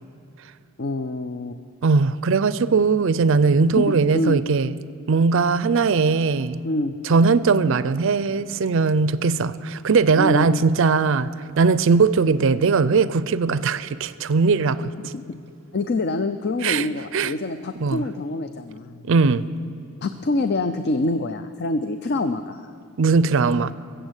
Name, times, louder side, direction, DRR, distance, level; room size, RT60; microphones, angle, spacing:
voice 1, 0.8-1.6 3.7-4.4 6.6-6.9 10.2-10.5 15.0-15.4 15.7-19.0 20.0-22.6, left 2 dB, 50° left, 0.5 m, -26 dB
voice 2, 1.8-4.8 5.1-6.6 7.0-11.3 11.6-15.1 16.6-16.9 17.1-17.3 17.8-18.0 19.1-19.5 23.0-23.7, right 4 dB, 60° right, 0.4 m, -19 dB
21.5 x 7.7 x 8.1 m
head